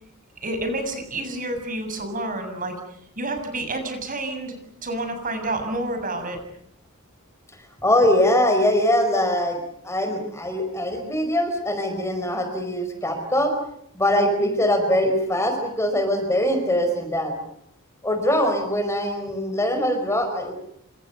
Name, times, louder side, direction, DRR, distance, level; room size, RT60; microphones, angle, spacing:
voice 1, 0.4-6.4 14.4-14.5, right 2 dB, 40° right, 7 dB, 7.1 m, -29 dB
voice 2, 7.8-13.5 13.9-17.3 18.0-20.5, left 1 dB, 15° left, 6 dB, 4.9 m, -22 dB
28.5 x 27.0 x 6.9 m, 0.72 s
head